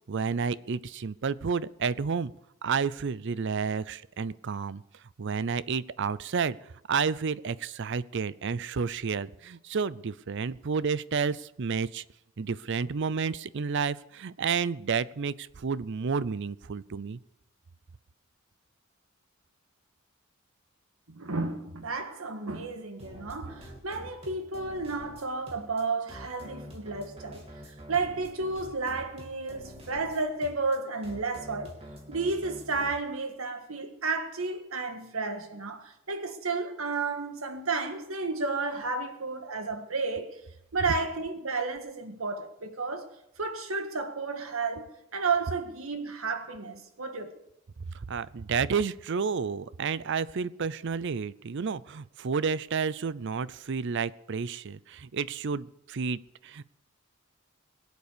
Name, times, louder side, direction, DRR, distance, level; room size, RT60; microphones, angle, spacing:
voice 1, 0.1-2.3 2.6-4.8 5.2-6.6 6.9-12.0 12.4-17.2 48.1-56.6, right 5 dB, 60° right, 0.5 m, -30 dB
voice 2, 21.1-27.5 27.9-31.8 32.1-40.4 40.7-43.1 43.4-47.3, right 3 dB, 80° right, 1.7 m, -32 dB
sound 1, 23.0-32.9, equal, 30° right, 3.0 m, -47 dB
21.5 x 8.2 x 6.8 m
head